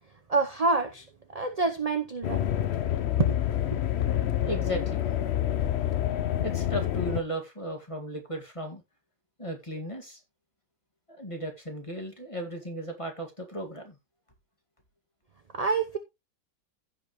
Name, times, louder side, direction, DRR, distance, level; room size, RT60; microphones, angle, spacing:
voice 1, 0.3-1.1 1.3-2.5 3.2-3.8 15.5-16.0, right 3 dB, 40° right, 0.6 m, -27 dB
sound 1, 2.2-7.2, left 11 dB, 65° left, 0.6 m, -27 dB
voice 2, 4.4-5.1 6.4-8.8 9.4-10.2 11.1-14.0, right 1 dB, 20° left, 2.0 m, -35 dB
15.5 x 5.4 x 3.1 m
omnidirectional pair, 1.9 m